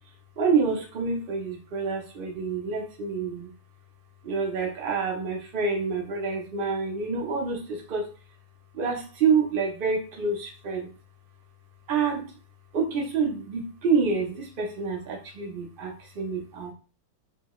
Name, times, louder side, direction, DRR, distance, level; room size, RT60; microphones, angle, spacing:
voice 1, 0.4-3.5 4.2-8.1 8.7-10.9 11.9-12.3 12.7-16.7, right 5 dB, 50° right, 0 dB, 0.6 m, -27 dB
3.3 x 2.8 x 3.1 m, 0.35 s
omnidirectional pair, 2.1 m